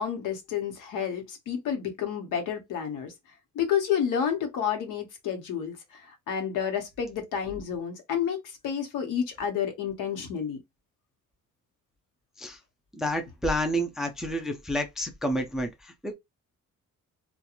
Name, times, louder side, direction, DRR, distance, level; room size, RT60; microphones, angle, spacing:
voice 1, 0.0-3.1 3.5-10.6, left 8 dB, 85° left, 0.9 m, -30 dB
voice 2, 12.9-16.1, equal, ahead, 0.3 m, -29 dB
2.4 x 2.2 x 2.9 m
cardioid pair, 160°, 31 cm